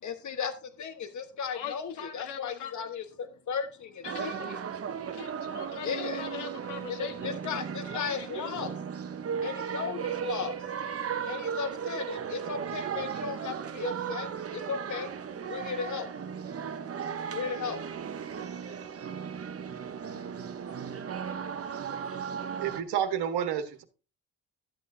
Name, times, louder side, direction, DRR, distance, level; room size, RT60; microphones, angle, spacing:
voice 1, 0.0-4.6 5.8-6.3 6.9-8.7 9.4-10.6 11.3-15.1 15.5-16.1 17.3-17.8, left 6 dB, 45° left, 1.4 m, -36 dB
voice 2, 1.5-2.9 4.0-4.5 5.1-7.6 7.8-8.6, left 8 dB, 75° left, 1.6 m, -41 dB
sound 1, 4.0-22.8, right 7 dB, 35° right, 1.0 m, -36 dB
voice 3, 22.6-23.8, right 9 dB, 70° right, 1.6 m, -30 dB
13.0 x 7.5 x 2.7 m
supercardioid pair, 80°, 41 cm